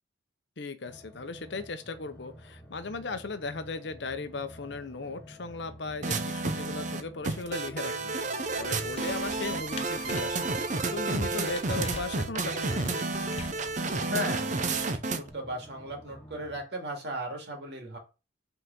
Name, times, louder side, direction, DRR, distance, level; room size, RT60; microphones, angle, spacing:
voice 1, 0.6-10.5 10.9-13.0, left 3 dB, 65° left, 0.8 m, -37 dB
sound 1, 0.9-16.6, equal, 10° left, 1.3 m, -50 dB
sound 2, 6.0-15.3, right 3 dB, 40° right, 0.7 m, -31 dB
sound 3, 8.4-13.9, left 4 dB, 30° left, 0.8 m, -46 dB
voice 2, 14.1-18.0, equal, 60° right, 2.2 m, -36 dB
5.5 x 4.0 x 6.0 m
head